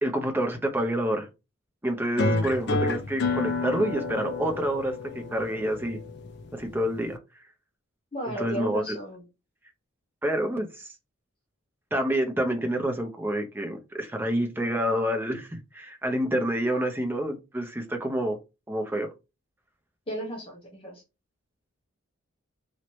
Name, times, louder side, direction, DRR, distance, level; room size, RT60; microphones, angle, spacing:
voice 1, 0.0-1.3 1.8-6.0 6.5-7.2 8.3-9.0 10.2-10.9 11.9-18.4 18.7-19.1, right 1 dB, 10° right, 4 dB, 0.5 m, -28 dB
sound 1, 2.2-7.2, left 3 dB, 50° left, 0.4 m, -30 dB
voice 2, 8.1-9.2 20.1-21.0, equal, 25° left, -4 dB, 0.8 m, -34 dB
3.0 x 2.7 x 3.0 m, 0.27 s
head